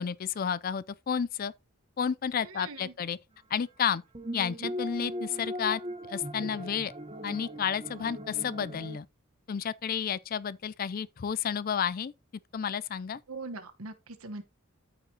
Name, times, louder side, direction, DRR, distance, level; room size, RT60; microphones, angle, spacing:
voice 1, 0.0-1.5 2.0-3.2 3.5-4.0 4.3-5.8 6.1-6.9 7.2-9.1 9.5-12.1 12.5-13.2, left 7 dB, 40° left, 0.4 m, -31 dB
voice 2, 2.4-2.9 13.3-14.4, right 3 dB, 80° right, 1.2 m, -41 dB
sound 1, 4.1-9.0, equal, 25° right, 0.9 m, -39 dB
13.5 x 5.0 x 2.8 m
head